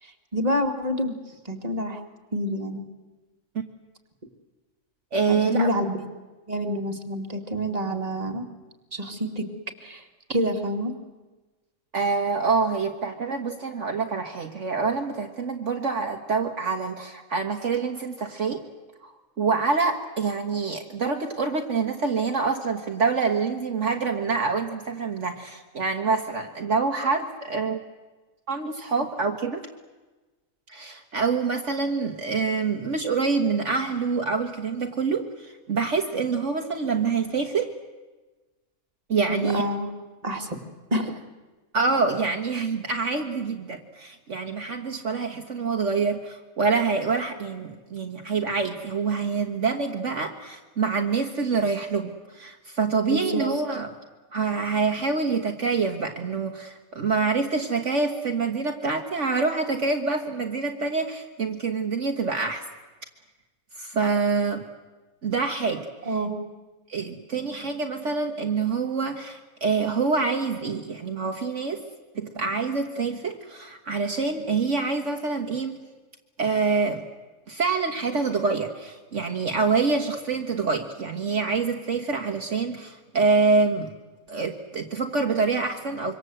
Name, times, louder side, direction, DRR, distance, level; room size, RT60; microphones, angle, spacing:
voice 1, 0.0-1.2 1.4-2.0 2.3-2.9 5.3-6.0 6.5-8.5 8.9-9.5 9.8-10.0 10.3-10.9 39.3-39.9 40.2-40.6 40.9-41.2 53.1-53.4 66.1-66.4, equal, 25° right, 3 dB, 2.3 m, -27 dB
voice 2, 5.1-5.7 11.9-18.6 19.0-19.1 19.4-27.8 28.5-29.6 30.7-37.7 39.1-39.6 41.7-53.9 54.3-62.6 63.8-64.7 65.2-66.1 66.9-71.8 72.2-75.8 76.4-77.0 77.5-83.9 84.3-86.2, right 4 dB, 60° right, 4 dB, 1.7 m, -26 dB
26.0 x 24.5 x 7.9 m, 1.2 s
omnidirectional pair, 1.5 m